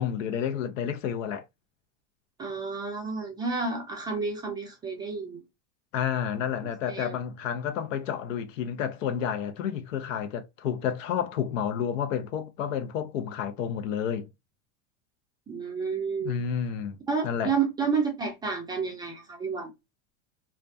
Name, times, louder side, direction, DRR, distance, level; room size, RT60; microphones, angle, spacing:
voice 1, 0.0-1.4 5.9-14.3 16.2-17.0 17.2-17.5, left 8 dB, 85° left, 0.7 m, -30 dB
voice 2, 2.4-5.4 6.9-7.2 15.5-16.4 17.1-19.7, right 5 dB, 10° right, 0.4 m, -30 dB
2.4 x 2.1 x 2.5 m
supercardioid pair, 140°, 38 cm